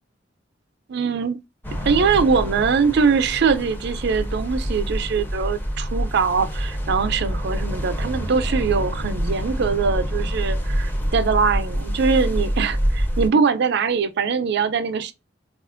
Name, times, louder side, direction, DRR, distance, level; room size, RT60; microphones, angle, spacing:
voice 1, 0.9-1.4 1.8-15.1, right 5 dB, 60° right, 0.4 m, -22 dB
sound 1, 1.6-13.3, equal, 10° left, 0.6 m, -26 dB
4.2 x 2.4 x 2.4 m
head